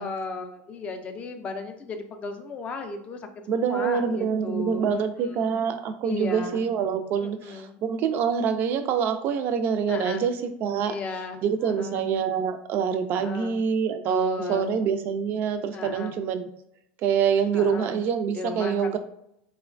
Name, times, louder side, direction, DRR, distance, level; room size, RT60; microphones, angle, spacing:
voice 1, 0.0-5.5 6.0-6.6 7.2-7.8 9.9-10.2 10.8-12.1 13.1-13.6 14.0-14.7 15.7-16.2 17.5-18.0 18.3-19.0, left 3 dB, 30° left, 6 dB, 0.4 m, -35 dB
voice 2, 3.5-10.9 11.4-16.5 17.0-19.0, right 7 dB, 45° right, 9 dB, 0.3 m, -26 dB
3.0 x 2.1 x 2.4 m, 0.75 s
supercardioid pair, 140°, 5 cm